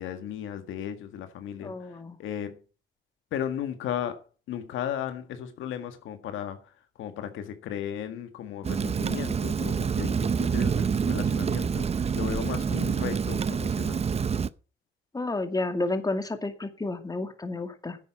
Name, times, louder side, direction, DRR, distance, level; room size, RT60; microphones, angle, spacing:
voice 1, 0.0-1.7 2.2-2.6 3.3-4.2 4.5-6.6 7.0-11.8 12.1-14.0, left 9 dB, 85° left, 1.8 m, -35 dB
voice 2, 1.6-2.2 15.1-18.0, left 2 dB, 20° left, 2.2 m, -31 dB
Rain, 8.6-14.5, right 6 dB, 30° right, 0.6 m, -27 dB
10.5 x 8.3 x 6.1 m
cardioid pair, 90°, 20 cm